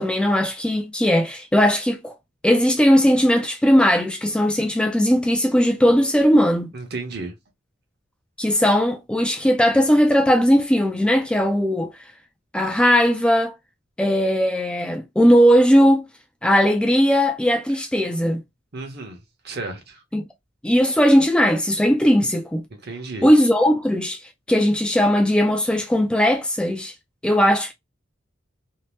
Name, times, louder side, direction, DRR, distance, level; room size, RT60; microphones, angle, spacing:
voice 1, 0.0-2.1 2.4-6.7 8.4-11.9 12.5-13.5 14.0-16.0 16.4-18.4 20.1-20.2 20.6-22.6 23.2-24.2 24.5-26.9 27.2-27.7, equal, 5° left, 0.3 m, -18 dB
voice 2, 6.7-7.3 18.7-19.2 19.4-20.0 22.7-23.3, right 3 dB, 55° right, 0.9 m, -33 dB
2.7 x 2.0 x 3.1 m
head